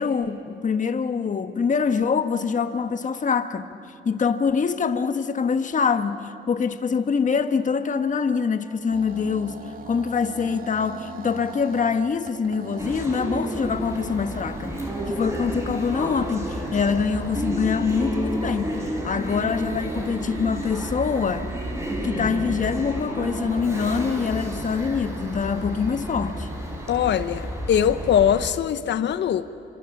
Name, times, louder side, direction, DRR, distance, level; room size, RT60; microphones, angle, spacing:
voice 1, 0.0-3.7 4.0-14.8 15.1-21.5 22.0-26.5, left 5 dB, 40° left, 9 dB, 1.4 m, -24 dB
sound 1, 8.9-27.4, right 5 dB, 45° right, 1.9 m, -42 dB
sound 2, 12.8-28.5, right 1 dB, 15° right, 4.7 m, -31 dB
voice 2, 26.9-29.5, left 9 dB, 65° left, 12 dB, 0.9 m, -22 dB
26.5 x 26.0 x 7.3 m, 2.8 s
cardioid pair, 90°, 20 cm